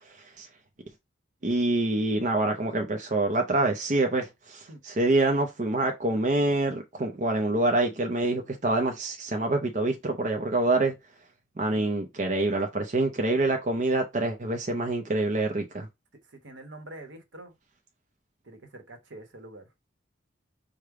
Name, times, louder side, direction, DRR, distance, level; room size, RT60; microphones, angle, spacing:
voice 1, 1.4-10.9 11.6-15.9, right 2 dB, 40° right, 0.6 m, -26 dB
voice 2, 16.4-17.5 18.4-19.7, right 1 dB, 70° right, 1.1 m, -45 dB
5.0 x 2.2 x 4.7 m
head